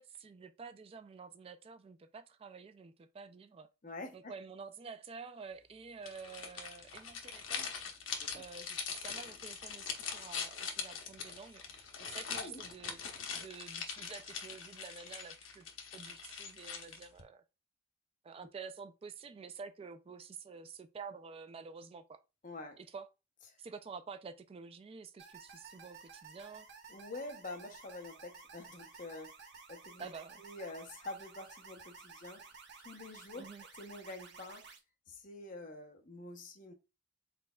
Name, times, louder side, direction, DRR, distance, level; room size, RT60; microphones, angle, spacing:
voice 1, 0.0-3.7 4.1-7.7 8.3-13.0 13.3-15.7 15.9-17.4 18.2-22.2 22.8-23.1 23.6-26.7 30.0-30.4 33.4-33.6, right 5 dB, 30° right, 0.3 m, -49 dB
voice 2, 3.8-4.3 8.2-8.4 12.4-12.6 22.4-22.8 26.9-29.3 29.7-30.1 30.4-32.4 32.8-33.5 33.8-34.7 35.1-36.7, left 2 dB, 45° left, 0.8 m, -46 dB
sound 1, 6.0-17.2, left 6 dB, 90° left, 0.9 m, -42 dB
sound 2, 25.2-34.8, right 5 dB, 60° right, 0.9 m, -54 dB
4.2 x 4.1 x 2.2 m
head